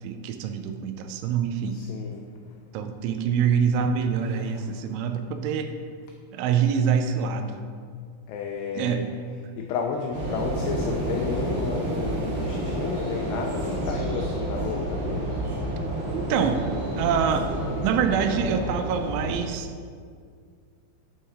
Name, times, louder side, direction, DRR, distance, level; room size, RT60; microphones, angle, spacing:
voice 1, 0.0-1.8 2.7-5.8 6.3-7.7 8.8-9.0 16.1-16.6 17.0-17.5 17.8-19.7, right 7 dB, 85° right, 8 dB, 3.0 m, -25 dB
voice 2, 1.7-2.6 4.3-4.9 8.3-9.0 9.6-15.3, left 6 dB, 90° left, 2 dB, 2.4 m, -32 dB
sound 1, 10.1-19.4, right 1 dB, 70° right, 3.6 m, -29 dB
11.0 x 3.8 x 4.2 m, 2.1 s
omnidirectional pair, 5.4 m